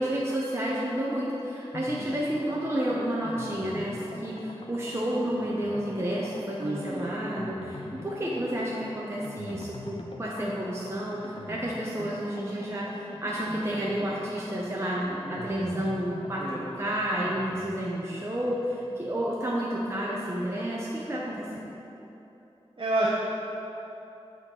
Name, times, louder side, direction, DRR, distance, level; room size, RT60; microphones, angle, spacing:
voice 1, 0.0-21.7, right 1 dB, 25° right, -5 dB, 0.8 m, -31 dB
sound 1, 1.7-20.3 20.6-20.7 21.0-21.1, left 2 dB, 55° left, 0.6 m, -44 dB
voice 2, 6.6-7.2 8.3-8.5 16.4-16.7 22.8-23.1, right 1 dB, 55° right, -7 dB, 0.9 m, -29 dB
8.5 x 4.5 x 3.9 m, 3.0 s
wide cardioid pair, 65°, 11 cm